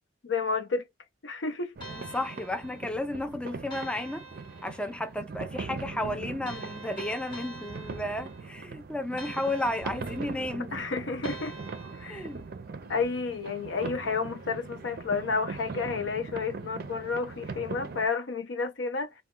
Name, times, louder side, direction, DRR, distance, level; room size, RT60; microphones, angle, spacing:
voice 1, 0.2-0.9 1.2-1.7 10.7-11.6 12.0-12.3 12.9-19.1, left 4 dB, 80° left, 0.6 m, -31 dB
sound 1, 1.8-3.1 3.7-5.0 6.5-8.6 9.2-10.5 11.2-12.5, right 1 dB, 25° left, 1.0 m, -46 dB
sound 2, 1.8-18.1, right 4 dB, 55° right, 0.5 m, -41 dB
voice 2, 1.9-4.2 4.6-10.8 12.0-12.5, left 1 dB, 5° left, 0.3 m, -33 dB
2.2 x 2.1 x 3.5 m
head